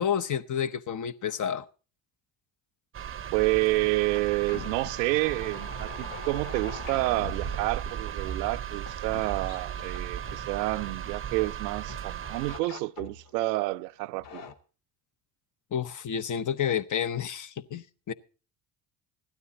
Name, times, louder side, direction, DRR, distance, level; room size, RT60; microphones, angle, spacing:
voice 1, 0.0-1.7 15.7-18.1, left 8 dB, 40° left, 0.8 m, -30 dB
sound 1, 2.9-12.6, right 9 dB, 25° right, 0.7 m, -36 dB
sound 2, 3.1-11.5 11.9-13.5 14.0-14.5, left 5 dB, 70° left, 1.4 m, -45 dB
voice 2, 3.3-14.5, right 21 dB, 80° right, 0.6 m, -29 dB
15.5 x 12.5 x 4.0 m
hypercardioid pair, 55°, 48 cm